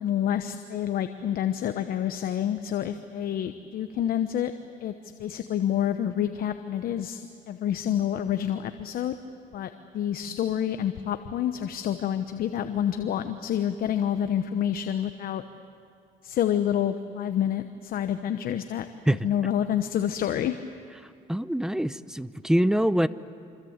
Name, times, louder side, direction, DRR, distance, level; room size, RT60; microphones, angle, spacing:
voice 1, 0.0-4.5 4.8-4.9 5.2-7.2 7.5-9.2 9.5-15.4 16.2-20.6, left 10 dB, 60° left, 9 dB, 1.0 m, -28 dB
voice 2, 21.3-23.1, right 1 dB, 5° right, 15 dB, 0.7 m, -24 dB
26.5 x 26.0 x 8.1 m, 2.4 s
cardioid pair, 110°, 17 cm